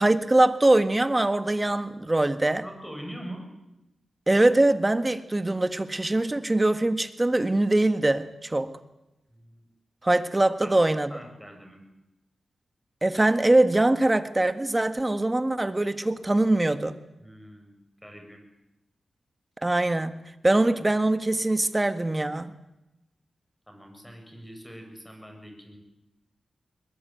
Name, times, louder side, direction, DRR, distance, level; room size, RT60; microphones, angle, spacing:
voice 1, 0.0-2.6 4.3-8.7 10.0-11.1 13.0-16.9 19.6-22.5, right 2 dB, 20° right, 10 dB, 1.7 m, -23 dB
voice 2, 2.6-3.5 9.3-9.6 10.6-10.8 11.1-11.8 17.2-18.4 23.7-25.8, equal, 5° left, 4 dB, 7.6 m, -43 dB
21.5 x 21.0 x 9.3 m, 0.97 s
cardioid pair, 70°, 0 cm